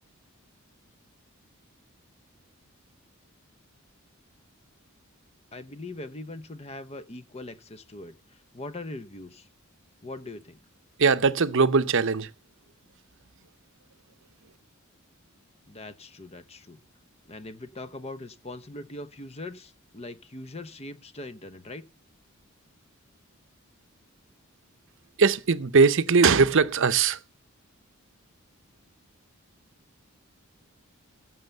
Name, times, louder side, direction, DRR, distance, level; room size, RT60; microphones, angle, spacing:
voice 1, 5.5-8.1 8.5-9.5 10.0-10.6 15.7-16.8 17.3-21.9, left 2 dB, 30° left, 0.8 m, -41 dB
voice 2, 11.0-12.3 25.2-27.2, right 5 dB, 60° right, 0.7 m, -20 dB
16.0 x 7.1 x 6.7 m
head